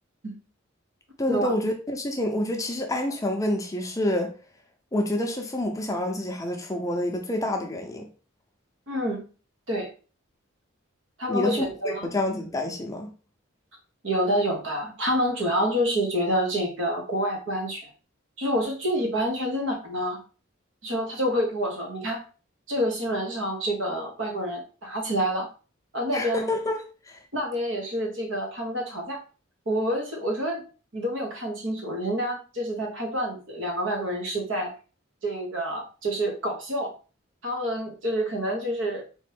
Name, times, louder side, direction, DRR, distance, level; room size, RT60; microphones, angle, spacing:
voice 1, 1.2-4.3 4.9-8.1 11.3-13.1 26.1-27.2, left 1 dB, 15° left, 0.6 m, -28 dB
voice 2, 8.9-9.2 9.7-9.9 11.2-12.1 14.0-17.9 18.4-20.2 20.8-22.2 22.7-25.5 25.9-26.5 27.3-29.2 29.7-30.6 30.9-34.7 35.2-36.9 37.4-39.0, equal, 70° right, 1.4 m, -27 dB
4.2 x 3.0 x 3.4 m
head